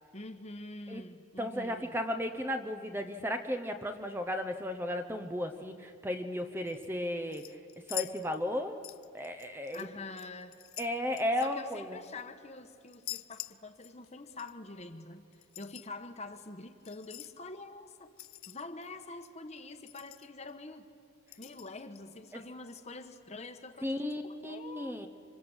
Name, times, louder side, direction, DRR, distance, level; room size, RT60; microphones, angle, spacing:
voice 1, 0.1-1.9 9.7-10.6 11.4-15.3 15.6-18.1 18.5-20.8 21.4-24.9, left 3 dB, 30° left, 8 dB, 1.3 m, -45 dB
voice 2, 1.4-7.4 7.9-8.8 9.1-9.9 10.8-12.0 22.3-22.4 23.8-25.1, left 1 dB, 10° right, 6 dB, 0.9 m, -34 dB
sound 1, 6.7-6.9 7.3-8.6 8.8-9.9 10.1-12.2 12.9-14.1 14.4-14.5 15.3-15.9 16.8-17.3 18.2-18.9 19.3-19.4 19.6-19.7 19.9-20.5 21.3-22.0 22.7-22.8, left 16 dB, 75° left, 0.6 m, -45 dB
26.5 x 26.0 x 8.1 m, 2.5 s
head